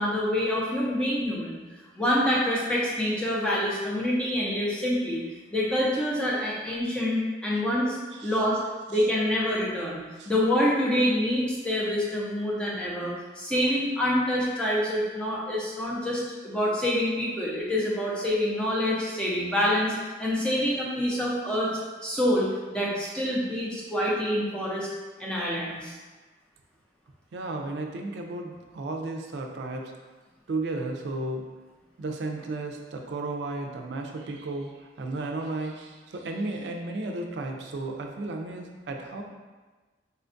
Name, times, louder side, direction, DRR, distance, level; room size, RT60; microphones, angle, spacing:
voice 1, 0.0-1.6 2.0-5.2 5.5-8.0 8.2-8.6 8.9-21.7 22.0-24.9 25.2-25.9, left 1 dB, 5° left, -6 dB, 0.5 m, -26 dB
voice 2, 27.3-29.9 30.5-31.4 32.0-39.2, right 2 dB, 75° right, 3 dB, 0.4 m, -34 dB
4.2 x 2.2 x 2.5 m, 1.3 s
head